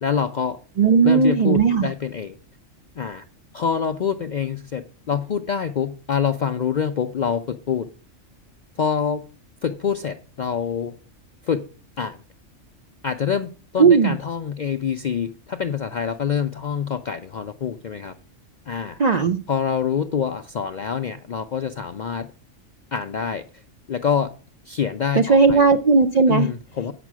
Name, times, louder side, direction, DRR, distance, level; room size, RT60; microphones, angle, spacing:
voice 1, 0.0-0.6 1.0-2.3 3.0-3.2 3.5-7.9 8.8-9.2 9.6-11.0 11.4-11.6 12.0-12.2 13.0-18.1 18.7-19.0 19.5-22.3 22.9-23.4 23.9-24.3 24.7-25.6 26.3-26.9, left 7 dB, 65° left, 0.4 m, -26 dB
voice 2, 0.8-1.9 13.8-14.1 19.0-19.4 25.1-26.5, right 5 dB, 65° right, 0.4 m, -16 dB
8.2 x 6.0 x 6.0 m
omnidirectional pair, 1.3 m